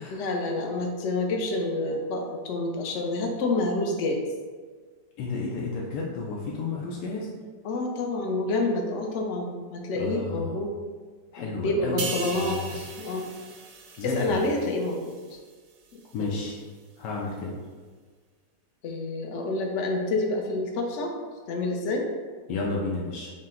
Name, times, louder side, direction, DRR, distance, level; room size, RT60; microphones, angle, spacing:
voice 1, 0.0-4.3 7.6-10.7 11.4-13.3 14.0-15.2 16.2-16.4 18.8-21.1 21.5-22.1, left 2 dB, 60° left, 1 dB, 0.8 m, -28 dB
voice 2, 5.2-7.3 10.0-10.6 11.3-12.1 12.3-12.7 14.0-14.4 16.1-16.6 17.0-17.6 22.5-23.3, left 3 dB, 80° left, -3 dB, 1.2 m, -32 dB
sound 1, 12.0-15.5 15.9-16.1, right 4 dB, 75° right, 1.0 m, -38 dB
5.7 x 2.1 x 3.7 m, 1.5 s
omnidirectional pair, 1.8 m